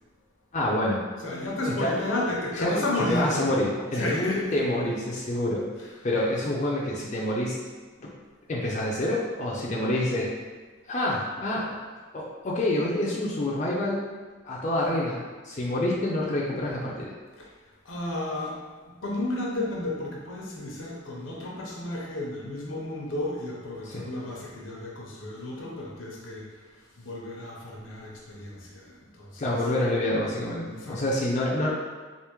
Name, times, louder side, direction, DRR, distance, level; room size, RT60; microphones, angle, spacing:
voice 1, 0.5-1.0 1.8-1.9 2.6-2.8 3.1-5.6 6.0-7.6 8.0-8.1 8.5-10.3 10.9-11.8 12.1-14.1 14.4-17.1 23.9-24.0 29.4-31.7, left 1 dB, 35° left, -4 dB, 0.4 m, -27 dB
voice 2, 1.2-3.6 3.9-4.7 5.1-5.4 5.7-6.1 17.4-17.5 17.8-29.7 30.7-31.2, left 1 dB, 90° left, -3 dB, 0.8 m, -33 dB
3.4 x 2.6 x 3.0 m, 1.3 s
head